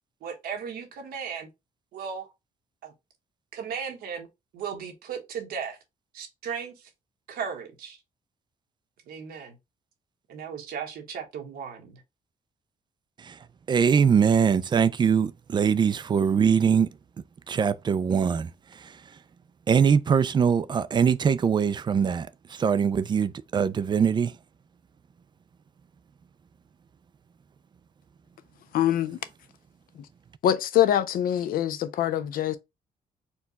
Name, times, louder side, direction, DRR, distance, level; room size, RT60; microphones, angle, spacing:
voice 1, 0.2-1.5 1.9-2.3 2.8-2.9 3.5-4.3 4.5-5.8 6.1-6.9 7.3-8.0 9.1-9.6 10.3-12.0, right 7 dB, 90° right, 1.3 m, -36 dB
voice 2, 13.7-16.9 17.5-19.2 19.7-24.4, right 7 dB, 30° right, 0.4 m, -23 dB
voice 3, 28.7-29.2 30.4-32.6, left 11 dB, 70° left, 0.6 m, -24 dB
4.4 x 2.3 x 4.1 m
cardioid pair, 125°, 15 cm